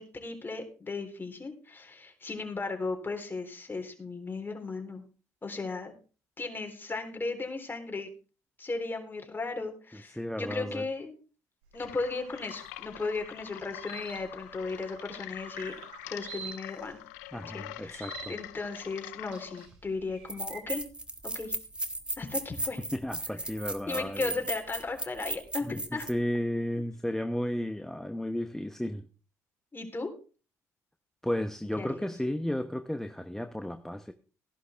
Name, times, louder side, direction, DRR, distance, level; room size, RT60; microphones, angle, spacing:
voice 1, 0.0-5.0 5.4-5.9 6.4-8.1 8.6-11.1 11.7-15.7 16.1-17.0 17.5-20.8 21.4-21.5 22.2-22.8 23.9-26.1 29.7-30.1 31.8-32.1, left 3 dB, 25° left, 3.5 m, -36 dB
voice 2, 10.2-10.8 17.3-18.4 22.9-24.3 25.6-25.8 26.1-29.1 31.2-34.1, left 1 dB, 5° left, 0.9 m, -33 dB
sound 1, 11.6-20.7, right 6 dB, 80° right, 3.3 m, -48 dB
sound 2, 11.7-19.7, left 17 dB, 85° left, 0.6 m, -45 dB
sound 3, 19.7-19.8 20.3-26.1, right 2 dB, 10° right, 1.6 m, -36 dB
15.0 x 11.0 x 3.4 m
hypercardioid pair, 55°, 8 cm